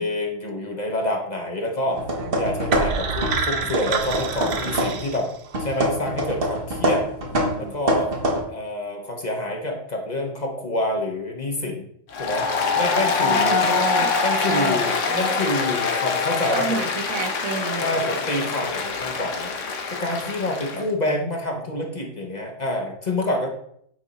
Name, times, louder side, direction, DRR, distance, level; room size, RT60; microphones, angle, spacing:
voice 1, 0.0-2.0 2.3-5.3 5.6-7.1 7.6-8.1 8.5-11.9 12.2-12.5 12.7-13.6 14.2-16.9 17.8-23.5, left 1 dB, 35° left, 1 dB, 1.1 m, -27 dB
sound 1, 1.9-3.5 3.7-5.1 5.5-8.4, right 1 dB, 45° right, 1.4 m, -25 dB
voice 2, 2.1-2.5 3.5-3.7 7.3-7.8 13.2-14.1 14.5-15.4 16.5-18.2 20.7-20.9, right 5 dB, 85° right, 8 dB, 1.2 m, -32 dB
sound 2, 2.7-5.7, right 5 dB, 65° right, 1.0 m, -28 dB
Applause, 12.1-20.8, left 4 dB, 65° left, 1.3 m, -24 dB
9.1 x 3.6 x 4.1 m, 0.69 s
omnidirectional pair, 1.4 m